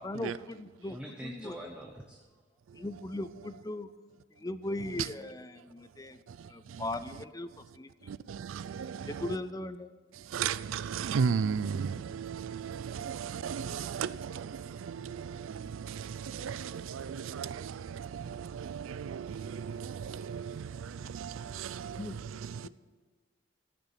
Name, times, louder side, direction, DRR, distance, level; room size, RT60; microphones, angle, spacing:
voice 1, 0.0-1.0 1.2-1.6 2.7-3.9 4.4-6.2 6.5-7.9 9.1-9.9 21.9-22.2 22.6-22.7, left 2 dB, 20° left, 0.5 m, -38 dB
voice 2, 0.9-2.2, equal, 5° right, 0.8 m, -43 dB
voice 3, 6.3-7.0 8.0-9.4 10.1-22.7, right 6 dB, 90° right, 0.4 m, -36 dB
14.0 x 6.8 x 7.4 m
head